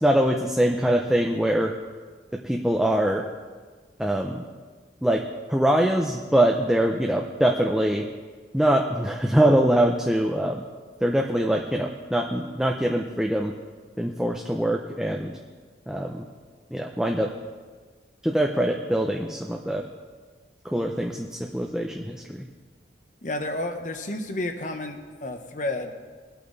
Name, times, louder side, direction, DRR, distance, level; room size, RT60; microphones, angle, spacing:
voice 1, 0.0-1.7 2.4-3.2 4.0-4.4 5.0-5.2 5.5-8.0 8.5-10.7 11.0-13.5 14.0-15.3 15.9-16.3 16.7-17.3 18.2-19.8 20.6-22.5, right 1 dB, 5° right, 1 dB, 0.6 m, -23 dB
voice 2, 23.2-25.9, left 2 dB, 45° left, 6 dB, 1.2 m, -31 dB
21.5 x 8.6 x 4.1 m, 1.5 s
head